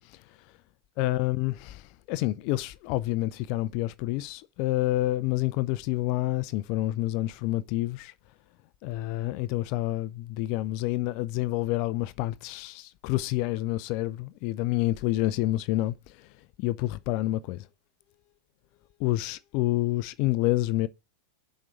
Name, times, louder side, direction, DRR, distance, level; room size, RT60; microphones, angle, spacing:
voice 1, 1.0-8.1 8.8-16.3 16.6-17.7 19.0-20.9, left 16 dB, 45° left, 0.5 m, -28 dB
6.2 x 6.1 x 6.8 m
figure-of-eight pair, 90°, 0 cm